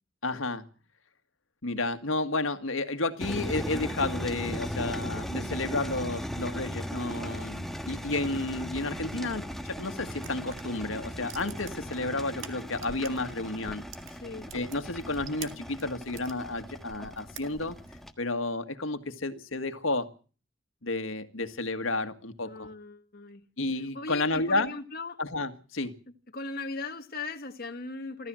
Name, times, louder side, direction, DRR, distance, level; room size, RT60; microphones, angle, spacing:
voice 1, 0.2-0.6 1.6-13.8 14.5-17.7 18.2-20.1 20.8-22.7 23.6-24.7 25.2-25.9, left 2 dB, 85° left, 1.8 m, -31 dB
sound 1, 3.2-18.1, equal, ahead, 1.4 m, -37 dB
sound 2, 10.2-13.3 13.6-16.4 16.8-17.9, right 6 dB, 75° right, 2.0 m, -46 dB
voice 2, 14.1-14.5 22.4-23.4 23.9-25.2 26.3-28.3, left 3 dB, 50° left, 1.6 m, -38 dB
25.0 x 14.5 x 7.6 m
head